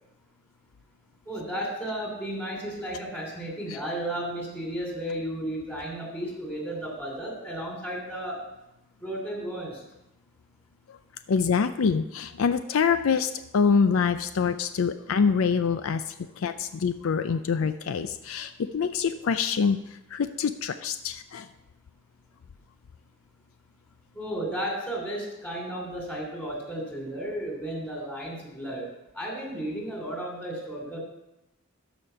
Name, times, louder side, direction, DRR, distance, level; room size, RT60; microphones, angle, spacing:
voice 1, 1.3-8.4 9.0-9.8 24.1-28.9 29.2-31.0, right 1 dB, 10° left, -1 dB, 2.9 m, -33 dB
voice 2, 11.3-19.8 20.1-21.5, left 6 dB, 70° left, 11 dB, 0.4 m, -25 dB
13.0 x 5.1 x 5.6 m, 0.90 s
head